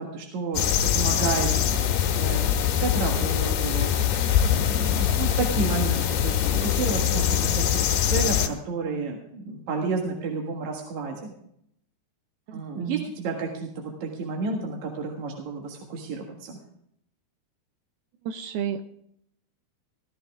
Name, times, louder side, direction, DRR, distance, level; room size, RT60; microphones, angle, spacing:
voice 1, 0.0-3.9 4.5-11.3 12.5-16.6, right 4 dB, 55° right, 0 dB, 2.5 m, -31 dB
sound 1, 0.5-8.5, left 9 dB, 75° left, 3.3 m, -23 dB
voice 2, 12.5-13.1 18.3-18.8, right 9 dB, 80° right, 8 dB, 2.4 m, -32 dB
16.5 x 13.5 x 3.6 m, 0.73 s
omnidirectional pair, 4.8 m